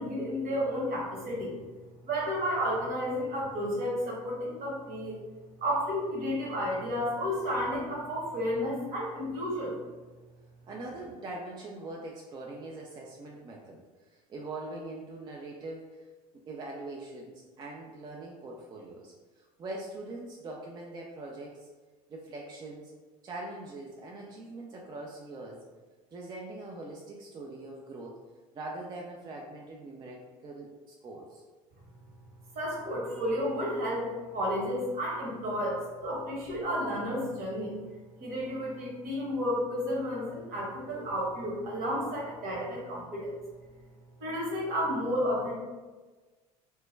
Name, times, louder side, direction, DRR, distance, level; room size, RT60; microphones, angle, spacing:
voice 1, 0.0-1.5 2.0-5.2 5.6-9.8 32.5-37.7 38.2-43.3 44.2-45.5, equal, 55° right, -4 dB, 1.1 m, -32 dB
voice 2, 10.7-13.8 14.1-16.0 16.5-21.7 22.1-22.9 23.2-25.6 26.1-28.2 28.5-31.4, right 2 dB, 25° right, -1 dB, 0.3 m, -42 dB
2.2 x 2.1 x 3.1 m, 1.3 s
hypercardioid pair, 75°, 19 cm